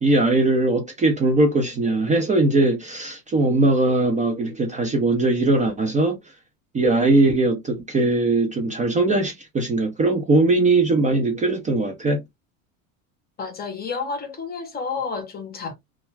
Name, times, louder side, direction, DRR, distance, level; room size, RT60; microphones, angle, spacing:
voice 1, 0.0-6.2 6.7-12.2, right 2 dB, 20° right, 0.5 m, -20 dB
voice 2, 13.4-15.7, left 5 dB, 25° left, 0.7 m, -30 dB
2.3 x 2.1 x 3.1 m
supercardioid pair, 115°, 41 cm